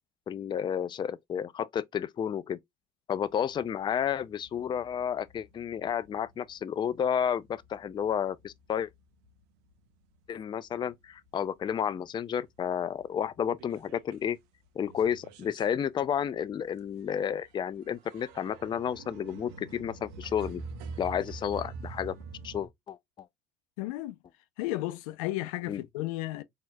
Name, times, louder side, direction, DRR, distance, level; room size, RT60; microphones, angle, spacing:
voice 1, 0.3-2.6 3.1-8.9 10.3-14.4 14.8-20.6 21.0-22.2 22.4-23.0 25.7-25.8, left 8 dB, 25° left, 0.4 m, -31 dB
sound 1, 3.2-9.8 10.2-11.3 11.7-11.8 12.1-12.2 12.5-14.3 14.6-22.7, right 4 dB, 70° right, 0.9 m, -47 dB
voice 2, 23.8-24.2 24.6-26.4, left 17 dB, 85° left, 0.5 m, -33 dB
4.4 x 2.8 x 2.2 m
supercardioid pair, 85°, 18 cm